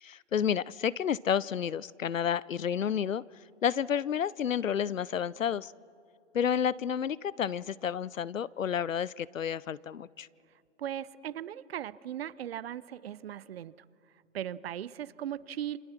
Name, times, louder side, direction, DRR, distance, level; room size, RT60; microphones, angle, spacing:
voice 1, 0.0-3.2 3.6-5.7 6.3-10.3, left 8 dB, 85° left, 22 dB, 0.7 m, -30 dB
voice 2, 10.8-13.7 14.3-15.8, right 10 dB, 50° right, 19 dB, 0.8 m, -38 dB
28.5 x 25.5 x 6.0 m, 2.8 s
hypercardioid pair, 130°, 38 cm